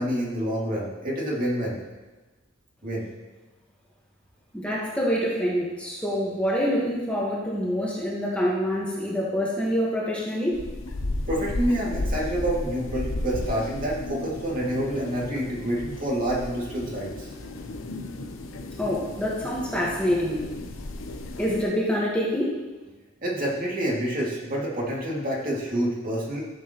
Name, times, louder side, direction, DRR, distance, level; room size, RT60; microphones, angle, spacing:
voice 1, 0.0-1.8 2.8-3.1 11.3-17.3 23.2-26.4, right 1 dB, 45° right, -4 dB, 2.3 m, -28 dB
voice 2, 4.5-10.6 18.8-20.4 21.4-22.5, equal, 5° left, -5 dB, 1.4 m, -26 dB
sound 1, 10.5-21.6, left 2 dB, 85° left, 0.8 m, -34 dB
14.0 x 7.4 x 3.0 m, 1.2 s
head